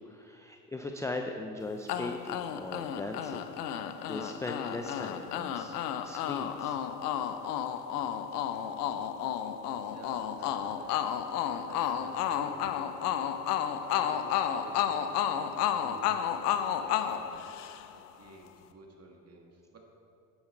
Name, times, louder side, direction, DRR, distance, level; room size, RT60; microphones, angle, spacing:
voice 1, 0.0-5.7 6.0-6.8 16.1-16.3, left 2 dB, 5° left, 4 dB, 0.5 m, -39 dB
sound 1, 1.9-18.1, left 9 dB, 75° left, 0.7 m, -32 dB
voice 2, 9.9-13.5 13.7-17.5 17.9-19.8, right 2 dB, 30° right, 2 dB, 1.9 m, -52 dB
9.4 x 8.8 x 4.5 m, 2.5 s
hypercardioid pair, 70°, 48 cm